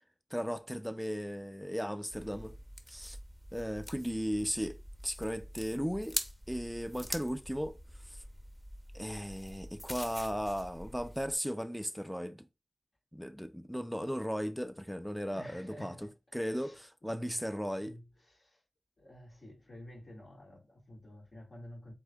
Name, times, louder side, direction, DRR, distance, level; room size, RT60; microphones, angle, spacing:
voice 1, 0.3-2.6 2.9-3.2 3.5-6.2 6.5-7.8 8.1-8.2 8.9-12.5 13.1-15.9 16.3-17.9, equal, ahead, 0.3 m, -36 dB
sound 1, 2.1-11.3, equal, 15° left, 0.9 m, -45 dB
voice 2, 15.3-16.1 16.5-18.6 19.0-21.9, left 1 dB, 75° left, 2.0 m, -51 dB
7.9 x 2.7 x 2.3 m
wide cardioid pair, 60°, 0 cm